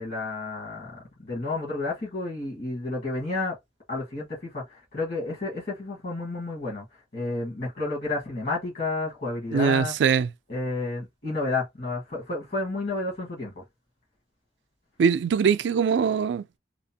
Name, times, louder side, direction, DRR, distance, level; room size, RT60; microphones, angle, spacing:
voice 1, 0.0-3.6 3.9-9.9 10.5-13.6, left 3 dB, 55° left, 1.3 m, -31 dB
voice 2, 9.5-10.3 15.0-16.6, right 6 dB, 75° right, 0.3 m, -22 dB
2.9 x 2.0 x 2.7 m
head